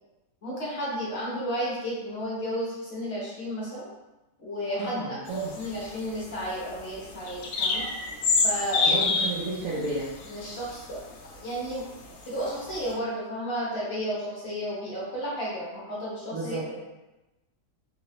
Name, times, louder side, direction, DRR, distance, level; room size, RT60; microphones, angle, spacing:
voice 1, 0.4-3.9 4.4-7.9 8.4-9.0 10.3-11.8 12.2-16.6, equal, 40° left, -7 dB, 1.1 m, -32 dB
voice 2, 4.8-5.5 8.9-10.1 16.3-16.6, right 2 dB, 65° right, -7 dB, 0.8 m, -32 dB
sound 1, 5.3-11.3 11.7-12.9, left 4 dB, 80° left, 0.8 m, -28 dB
3.8 x 2.6 x 3.1 m, 1.0 s
omnidirectional pair, 2.2 m